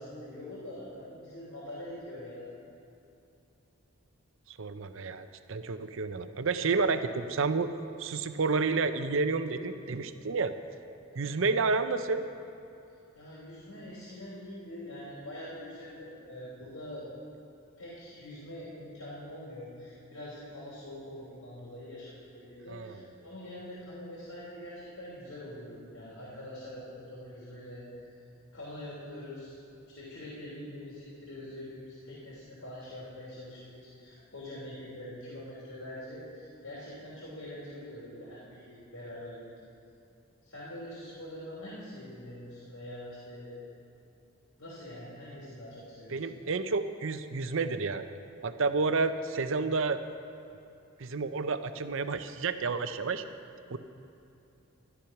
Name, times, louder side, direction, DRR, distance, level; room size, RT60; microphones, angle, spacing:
voice 1, 0.0-2.5 11.1-11.4 13.1-17.1 17.8-27.8 28.5-29.6 29.9-39.5 40.4-43.5 44.6-46.2, left 1 dB, 80° left, -8 dB, 3.2 m, -44 dB
voice 2, 4.5-7.7 8.0-10.5 11.2-12.2 22.7-23.1 46.1-48.1 48.4-50.0 51.0-53.2 53.7-53.8, right 4 dB, 60° right, 10 dB, 0.6 m, -30 dB
12.5 x 12.0 x 5.8 m, 2.7 s
head